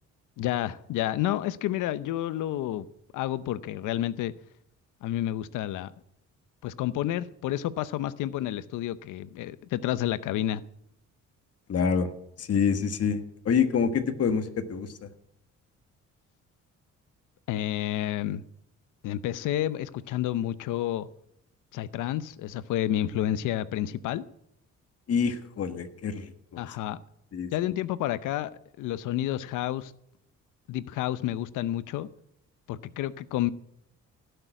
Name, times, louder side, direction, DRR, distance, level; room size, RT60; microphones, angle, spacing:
voice 1, 0.4-2.9 3.1-4.3 5.0-5.9 6.6-10.6 17.5-18.4 19.0-21.1 21.7-24.2 26.6-27.0 27.5-28.5 28.8-29.9 30.7-32.1 32.7-33.5, left 13 dB, 90° left, 0.7 m, -30 dB
voice 2, 11.7-12.1 12.4-14.9 25.1-26.2 26.5-26.6 27.3-27.5, left 6 dB, 55° left, 1.5 m, -26 dB
16.5 x 6.8 x 9.0 m
cardioid pair, 90°, 30 cm